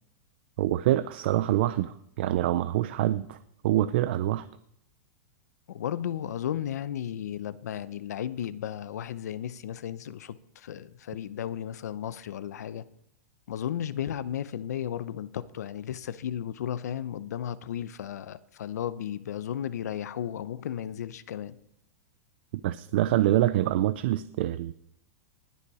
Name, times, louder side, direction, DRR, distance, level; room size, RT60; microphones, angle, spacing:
voice 1, 0.6-3.4 3.6-4.5 22.6-24.7, right 14 dB, 40° right, 15 dB, 0.4 m, -25 dB
voice 2, 5.7-12.9 13.5-21.6, left 10 dB, 90° left, 15 dB, 0.8 m, -34 dB
19.5 x 7.0 x 4.9 m, 0.76 s
supercardioid pair, 175°, 9 cm